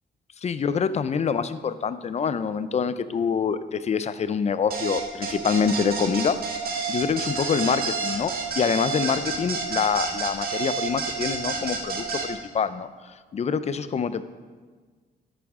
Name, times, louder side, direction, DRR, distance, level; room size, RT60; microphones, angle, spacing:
voice 1, 0.4-6.4 6.9-12.9 13.3-14.2, left 6 dB, 40° left, 13 dB, 0.5 m, -26 dB
sound 1, 4.7-12.3, right 4 dB, 65° right, 1.6 m, -29 dB
13.5 x 8.4 x 3.7 m, 1.5 s
cardioid pair, 105°, 17 cm